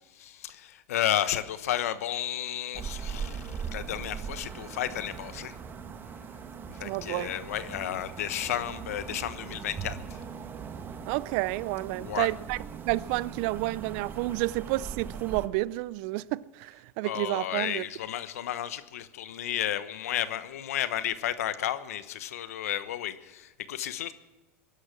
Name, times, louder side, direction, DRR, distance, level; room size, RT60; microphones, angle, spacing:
voice 1, 0.2-5.5 6.7-10.2 12.0-12.3 17.0-24.1, left 11 dB, 80° left, 1.1 m, -32 dB
sound 1, 2.7-15.5, right 6 dB, 25° right, 1.2 m, -40 dB
voice 2, 6.8-7.3 11.1-12.6 12.9-17.9, right 19 dB, 60° right, 0.5 m, -30 dB
20.5 x 11.5 x 6.2 m
hypercardioid pair, 115°, 8 cm